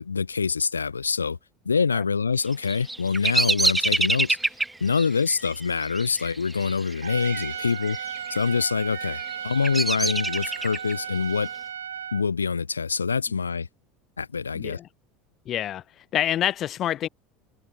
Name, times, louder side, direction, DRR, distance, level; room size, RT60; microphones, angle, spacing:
voice 1, 0.0-1.4 1.6-4.4 4.8-11.5 12.1-13.7 14.2-14.8, left 5 dB, 80° left, 0.7 m, -25 dB
Bird vocalization bird call bird song, 2.5-7.5 7.8-8.4 8.9-10.9, right 2 dB, 10° right, 0.6 m, -26 dB
Trumpet, 7.0-12.3, right 8 dB, 75° right, 1.4 m, -35 dB
voice 2, 14.5-14.9 15.5-17.1, left 12 dB, 40° left, 0.3 m, -27 dB
figure-of-eight pair, 70°, 0 cm